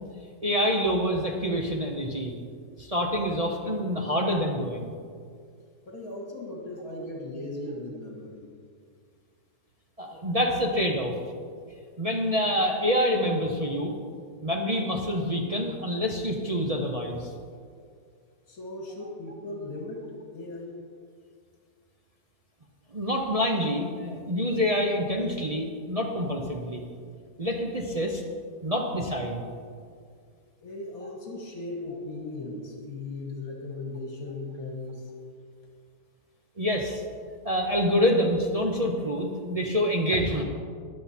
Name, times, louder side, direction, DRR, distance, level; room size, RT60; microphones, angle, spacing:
voice 1, 0.4-2.3 2.8-4.9 10.0-11.2 12.0-13.9 14.4-17.3 22.9-26.9 27.4-28.2 28.6-29.4 36.6-37.0 37.4-40.4, equal, 30° right, 0 dB, 0.8 m, -26 dB
voice 2, 5.9-8.5 18.5-20.7 30.6-35.1, left 2 dB, 65° left, 0 dB, 2.1 m, -37 dB
14.0 x 10.5 x 4.3 m, 2.2 s
omnidirectional pair, 1.7 m